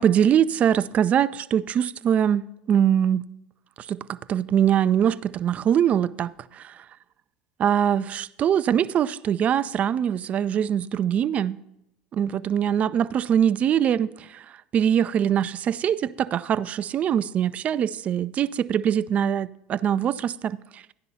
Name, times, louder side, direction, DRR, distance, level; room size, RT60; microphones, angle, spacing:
voice 1, 0.0-2.4 2.7-3.3 3.9-6.8 7.6-11.6 12.1-14.5 14.7-20.8, right 9 dB, 40° right, 0.3 m, -23 dB
12.0 x 10.5 x 2.8 m
hypercardioid pair, 85°, 4 cm